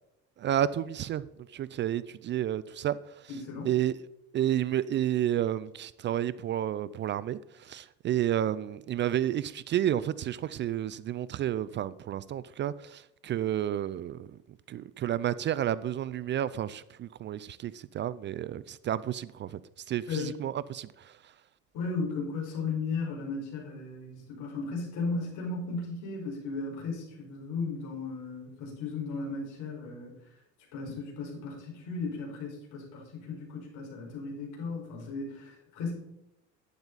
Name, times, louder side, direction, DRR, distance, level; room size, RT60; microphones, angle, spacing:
voice 1, 0.4-1.2 1.5-3.3 3.6-3.9 4.3-14.4 14.7-19.6 19.9-21.2, right 11 dB, 35° right, 0.4 m, -31 dB
voice 2, 3.3-3.7 20.1-20.3 21.7-30.2 30.7-35.9, left 4 dB, 65° left, 5.1 m, -35 dB
12.0 x 9.6 x 4.0 m
cardioid pair, 115°, 32 cm